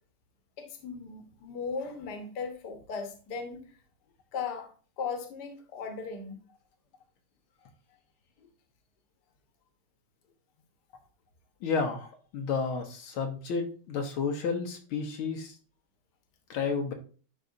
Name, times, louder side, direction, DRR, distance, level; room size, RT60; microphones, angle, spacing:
voice 1, 0.6-3.6 4.3-4.7 5.0-6.4, left 5 dB, 55° left, 6 dB, 1.7 m, -37 dB
voice 2, 11.6-15.6 16.5-16.9, left 5 dB, 75° left, 3 dB, 1.8 m, -31 dB
10.5 x 4.2 x 2.7 m, 0.39 s
omnidirectional pair, 2.3 m